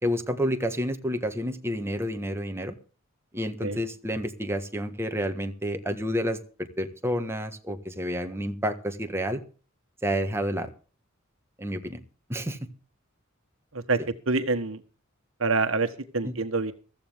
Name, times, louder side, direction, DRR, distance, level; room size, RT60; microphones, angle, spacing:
voice 1, 0.0-2.8 3.3-9.4 10.0-10.7 11.6-12.0 12.3-12.6 16.2-16.3, equal, 10° right, 6 dB, 1.6 m, -29 dB
voice 2, 14.3-14.8 15.4-15.9 16.1-16.7, right 3 dB, 70° right, 9 dB, 1.5 m, -25 dB
15.5 x 14.5 x 3.6 m, 0.37 s
head